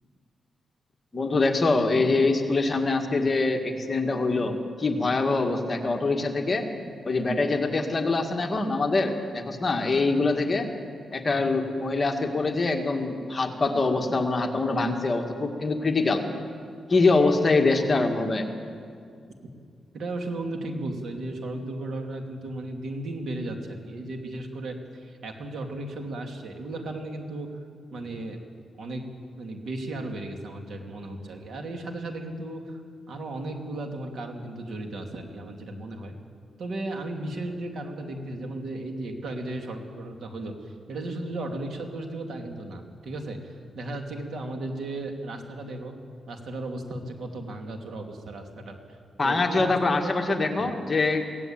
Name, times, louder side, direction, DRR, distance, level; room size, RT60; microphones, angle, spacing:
voice 1, 1.1-6.7 7.1-10.7 11.1-16.2 16.9-18.5 49.2-51.3, left 3 dB, 25° left, 3 dB, 2.0 m, -24 dB
voice 2, 17.6-18.0 19.9-27.5 27.9-28.4 28.8-29.1 29.4-32.8 33.1-36.1 36.6-45.9 46.3-48.8 49.2-50.7, right 2 dB, 65° right, 3 dB, 2.9 m, -35 dB
23.5 x 17.5 x 9.1 m, 2.2 s
wide cardioid pair, 135°, 0 cm